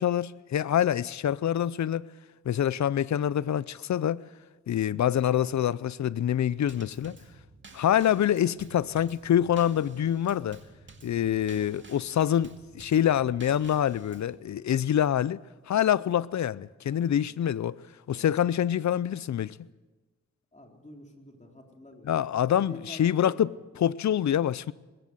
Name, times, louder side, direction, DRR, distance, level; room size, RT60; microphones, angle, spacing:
voice 1, 0.0-2.0 2.5-4.2 4.7-7.2 7.7-10.6 11.0-15.4 15.7-17.8 18.1-19.6 22.1-23.5 23.8-24.7, left 10 dB, 70° left, 0.6 m, -26 dB
Drum kit / Snare drum / Bass drum, 6.7-14.4, right 3 dB, 40° right, 2.1 m, -52 dB
voice 2, 20.5-23.6, left 1 dB, 25° left, 4.0 m, -49 dB
20.5 x 16.0 x 8.0 m
cardioid pair, 65°, 29 cm